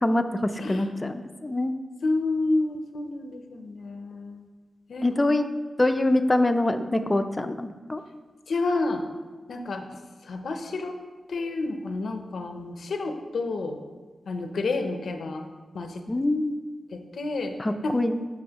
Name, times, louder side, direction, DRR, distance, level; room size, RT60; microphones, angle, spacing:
voice 1, 0.0-1.7 5.0-5.5 5.8-8.0 16.1-16.6 17.6-18.2, left 1 dB, 20° left, 8 dB, 0.4 m, -24 dB
voice 2, 2.0-4.4 4.9-5.1 8.5-9.0 9.5-9.9 10.3-11.0 11.3-13.8 14.3-15.4 15.7-16.0 16.9-17.5 17.8-18.0, left 3 dB, 75° left, 6 dB, 0.5 m, -29 dB
7.5 x 5.6 x 2.9 m, 1.4 s
wide cardioid pair, 90°, 0 cm